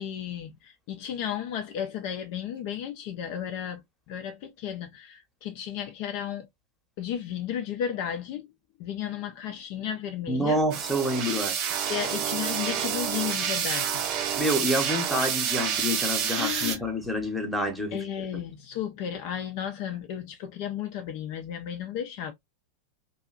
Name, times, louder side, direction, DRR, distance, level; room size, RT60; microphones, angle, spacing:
voice 1, 0.0-6.5 7.0-8.5 8.8-10.6 11.9-14.0 16.4-16.8 17.9-22.3, left 9 dB, 45° left, 0.4 m, -34 dB
voice 2, 10.3-11.7 14.4-18.3, equal, ahead, 0.9 m, -28 dB
sound 1, 10.7-16.8, right 8 dB, 40° right, 0.5 m, -28 dB
2.6 x 2.3 x 2.4 m
figure-of-eight pair, 90°, 0 cm